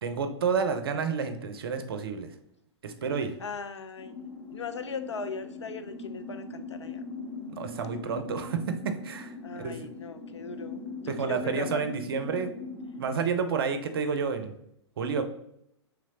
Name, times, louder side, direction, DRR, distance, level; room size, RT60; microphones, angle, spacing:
voice 1, 0.0-2.3 2.8-3.3 7.6-9.3 9.6-9.7 11.2-12.5 13.0-14.5 15.0-15.2, right 5 dB, 55° right, 8 dB, 0.5 m, -30 dB
voice 2, 3.4-4.2 4.5-7.0 9.4-11.8, left 5 dB, 75° left, 10 dB, 0.4 m, -39 dB
sound 1, 4.0-13.1, left 3 dB, 30° left, 0.9 m, -41 dB
3.3 x 3.1 x 3.6 m, 0.74 s
figure-of-eight pair, 105°, 15 cm